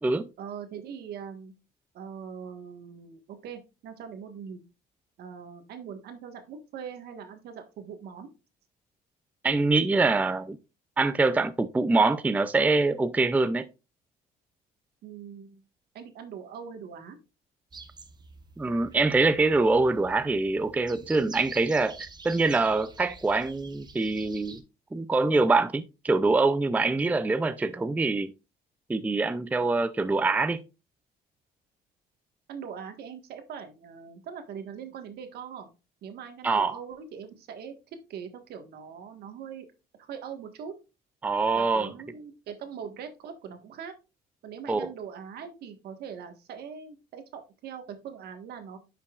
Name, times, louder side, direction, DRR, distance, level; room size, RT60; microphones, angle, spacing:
voice 1, 0.4-1.5 1.9-4.6 5.2-8.3 15.0-15.6 15.9-17.2 32.5-35.7 36.0-37.7 38.1-39.7 40.0-40.8 41.5-43.9 44.4-48.8, right 7 dB, 70° right, 1.5 m, -41 dB
voice 2, 9.4-10.6 11.0-13.7 18.6-22.0 22.2-24.6 24.9-28.3 28.9-30.6 36.4-36.8 41.2-41.9 44.7-44.9, right 3 dB, 10° right, 0.4 m, -24 dB
sound 1, 17.7-24.6, right 4 dB, 25° right, 1.0 m, -48 dB
10.5 x 5.7 x 2.4 m
cardioid pair, 110°, 17 cm